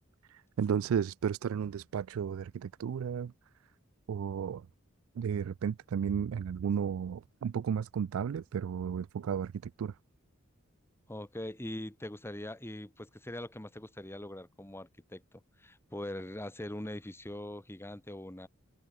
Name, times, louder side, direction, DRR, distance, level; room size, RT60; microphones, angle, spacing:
voice 1, 0.3-3.3 4.1-4.6 5.2-9.9, right 7 dB, 75° right, 0.3 m, -33 dB
voice 2, 11.1-15.2 15.6-18.5, left 1 dB, 10° left, 1.6 m, -42 dB
head